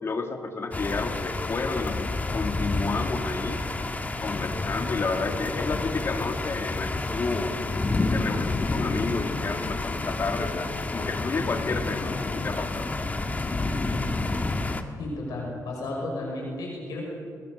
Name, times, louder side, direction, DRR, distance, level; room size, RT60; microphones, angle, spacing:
voice 1, 0.0-3.6 4.2-7.6 8.1-12.9, left 4 dB, 40° left, 5 dB, 2.5 m, -31 dB
sound 1, 0.7-14.8, left 2 dB, 25° left, 1.6 m, -29 dB
voice 2, 15.0-17.0, left 2 dB, 85° left, -1 dB, 5.5 m, -33 dB
21.5 x 21.0 x 6.7 m, 2.3 s
cardioid pair, 110°, 6 cm